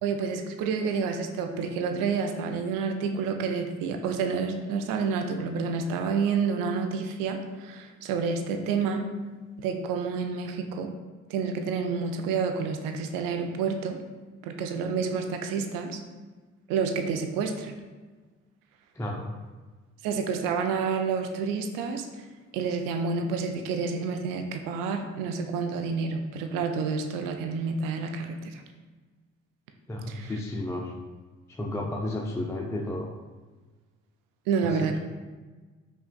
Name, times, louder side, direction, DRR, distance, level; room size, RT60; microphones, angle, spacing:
voice 1, 0.0-9.0 9.6-10.9 11.3-14.0 14.4-16.0 16.7-17.7 20.0-22.2 22.5-28.6 30.1-30.3 34.5-35.0, right 5 dB, 65° right, 5 dB, 0.5 m, -29 dB
voice 2, 18.9-19.3 29.9-30.9 31.5-33.1 34.6-35.0, left 1 dB, 10° left, 0 dB, 0.3 m, -32 dB
5.3 x 2.2 x 2.3 m, 1.3 s
figure-of-eight pair, 45°, 36 cm